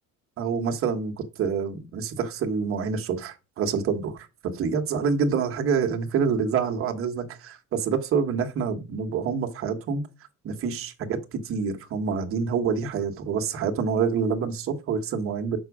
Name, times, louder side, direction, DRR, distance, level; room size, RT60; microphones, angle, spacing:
voice 1, 0.4-4.3 4.5-10.0 10.4-15.6, right 6 dB, 40° right, 1.3 m, -27 dB
7.0 x 6.0 x 4.8 m
cardioid pair, 180°, 32 cm